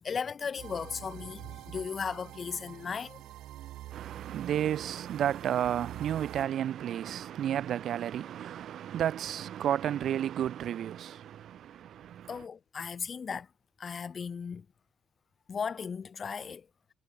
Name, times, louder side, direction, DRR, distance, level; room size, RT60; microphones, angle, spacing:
voice 1, 0.0-3.2 12.3-13.5 13.8-14.7 15.5-16.7, left 6 dB, 45° left, 1.0 m, -36 dB
sound 1, 0.6-6.4, right 15 dB, 90° right, 6.2 m, -46 dB
voice 2, 3.9-12.3, right 10 dB, 70° right, 3.0 m, -32 dB
cardioid pair, 90°, 0 cm